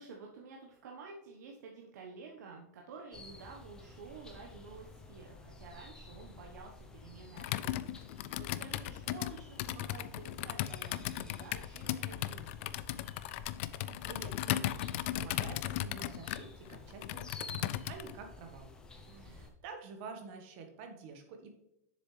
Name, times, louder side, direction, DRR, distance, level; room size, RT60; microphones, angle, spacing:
voice 1, 0.0-12.8 19.1-19.4, right 4 dB, 80° right, 0 dB, 1.1 m, -51 dB
sound 1, 3.1-19.5, left 3 dB, 10° left, 0.7 m, -52 dB
Computer keyboard, 7.4-18.1, left 14 dB, 45° left, 0.4 m, -37 dB
voice 2, 13.7-14.8 15.1-18.7 19.2-21.5, right 4 dB, 45° right, 5 dB, 1.4 m, -49 dB
7.3 x 6.7 x 3.3 m, 0.85 s
supercardioid pair, 165°, 9 cm